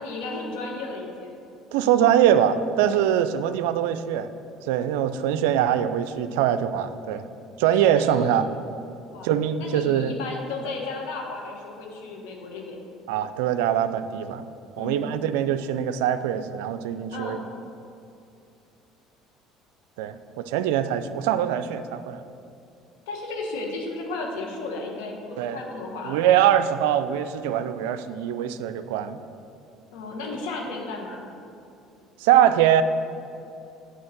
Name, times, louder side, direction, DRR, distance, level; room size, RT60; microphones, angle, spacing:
voice 1, 0.0-1.4 7.9-8.4 9.1-12.8 14.8-15.1 17.1-17.5 23.1-26.3 29.9-31.3, left 3 dB, 75° left, 0 dB, 1.2 m, -34 dB
voice 2, 1.7-4.3 4.6-7.2 7.6-8.5 9.2-10.1 13.1-14.4 14.8-17.4 20.0-22.2 25.4-25.6 26.1-29.2 32.2-32.8, right 10 dB, 80° right, 12 dB, 0.3 m, -23 dB
8.6 x 3.8 x 5.9 m, 2.7 s
hypercardioid pair, 70°, 0 cm